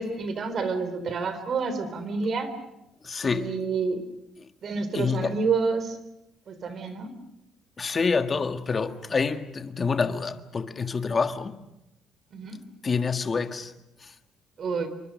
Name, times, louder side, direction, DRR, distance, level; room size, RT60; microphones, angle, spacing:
voice 1, 0.0-2.5 3.2-4.0 4.6-6.0 6.5-7.1 12.3-12.6 14.6-14.9, right 4 dB, 50° right, 3.7 m, -28 dB
voice 2, 3.0-3.5 4.9-5.3 7.8-11.6 12.8-13.7, left 5 dB, 30° left, 1.6 m, -27 dB
27.5 x 24.0 x 6.4 m
cardioid pair, 115°, 0 cm